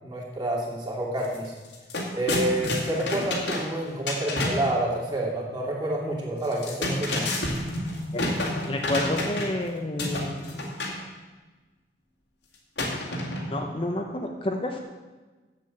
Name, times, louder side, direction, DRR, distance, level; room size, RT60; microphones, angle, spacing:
voice 1, 0.0-1.5 2.1-7.3, right 1 dB, 25° right, -3 dB, 2.6 m, -28 dB
sound 1, 1.2-1.4 1.6-4.8 6.4-9.6 10.0-11.0 12.8-13.7, left 1 dB, 75° left, 2.1 m, -29 dB
voice 2, 8.7-10.4 13.5-14.8, left 1 dB, 30° left, 2 dB, 0.8 m, -29 dB
7.7 x 7.6 x 7.8 m, 1.3 s
head